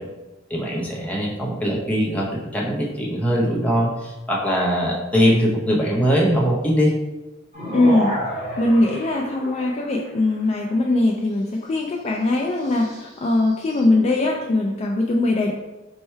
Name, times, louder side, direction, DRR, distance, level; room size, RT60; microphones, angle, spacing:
voice 1, 0.5-6.9, equal, 5° left, -4 dB, 0.8 m, -21 dB
sound 1, 7.5-10.2 12.6-13.8, equal, 35° right, 1.4 m, -31 dB
voice 2, 7.7-8.1 8.6-15.5, left 2 dB, 30° left, 0 dB, 0.3 m, -21 dB
4.4 x 2.2 x 4.3 m, 1.1 s
head